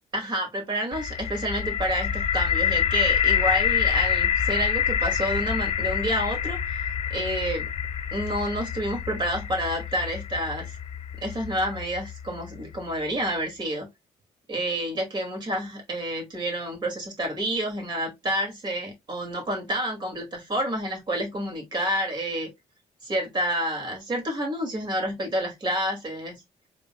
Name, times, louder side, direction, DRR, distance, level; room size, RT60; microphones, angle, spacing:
voice 1, 0.1-7.7 8.1-10.7 11.2-13.9 14.5-22.5 23.0-26.4, right 1 dB, 35° right, 2.4 m, -29 dB
sound 1, 0.9-12.8, left 8 dB, 50° left, 0.7 m, -27 dB
5.2 x 3.4 x 2.3 m
cardioid pair, 130°, 12 cm